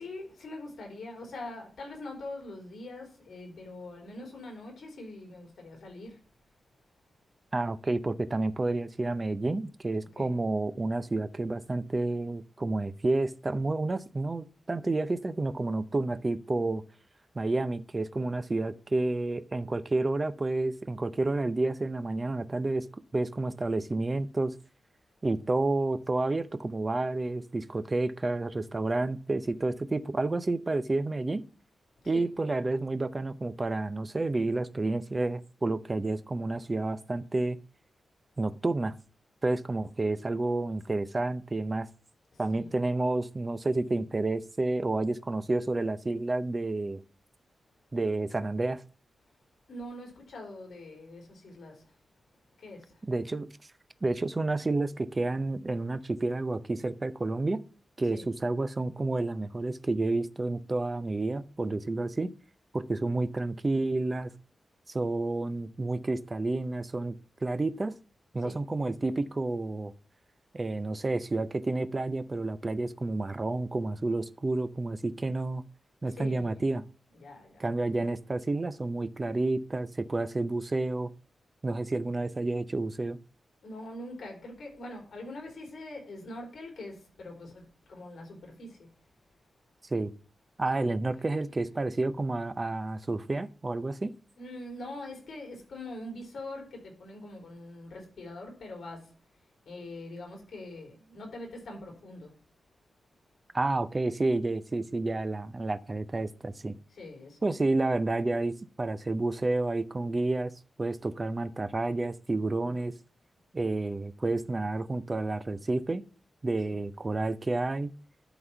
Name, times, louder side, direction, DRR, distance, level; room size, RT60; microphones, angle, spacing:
voice 1, 0.0-6.2 10.1-10.4 32.0-32.3 42.3-42.7 49.7-51.9 52.6-53.0 58.1-58.3 68.4-68.6 76.1-76.7 77.1-77.6 83.6-88.9 94.4-99.2 99.7-102.4 106.9-107.4 112.6-112.8 116.7-116.8, left 2 dB, 65° left, 3.5 m, -43 dB
voice 2, 7.5-16.8 17.3-22.9 23.1-24.5 25.2-31.4 32.1-37.6 38.4-38.9 39.4-41.9 42.4-47.0 47.9-48.8 53.1-53.5 54.0-57.6 58.0-62.3 62.7-64.3 64.9-67.1 67.4-68.0 68.3-69.9 70.5-75.6 76.0-76.8 77.6-81.1 81.6-83.2 89.9-90.1 90.6-94.1 103.5-106.8 107.4-110.5 110.8-112.9 113.5-116.0 116.4-117.9, right 2 dB, 25° right, 0.5 m, -30 dB
11.0 x 4.1 x 5.8 m
wide cardioid pair, 175°, 0 cm